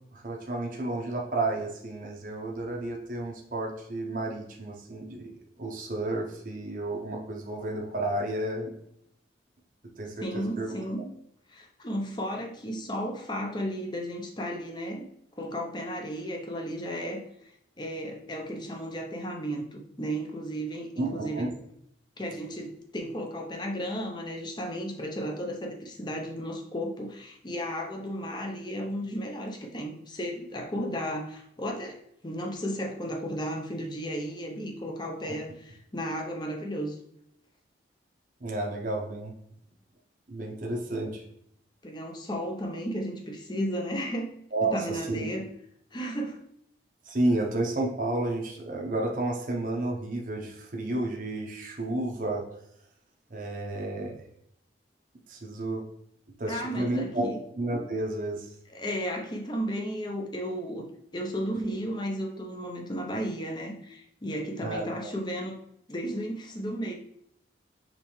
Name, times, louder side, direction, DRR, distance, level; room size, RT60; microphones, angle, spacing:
voice 1, 0.1-5.3 5.6-8.7 10.0-10.8 21.0-21.5 35.2-35.3 38.4-39.3 40.3-41.2 44.5-45.2 47.0-52.4 53.3-54.1 55.3-55.8 56.4-57.3 57.6-58.5 64.6-64.8, right 2 dB, 45° right, 0 dB, 0.7 m, -31 dB
voice 2, 10.2-11.1 11.5-15.0 15.4-17.2 17.8-21.5 22.2-32.0 32.2-37.0 41.8-44.4 44.6-45.5 45.9-46.4 56.5-57.4 58.7-60.9 61.1-65.6 65.9-66.9, equal, 25° left, 3 dB, 0.6 m, -34 dB
5.1 x 3.3 x 3.1 m, 0.73 s
head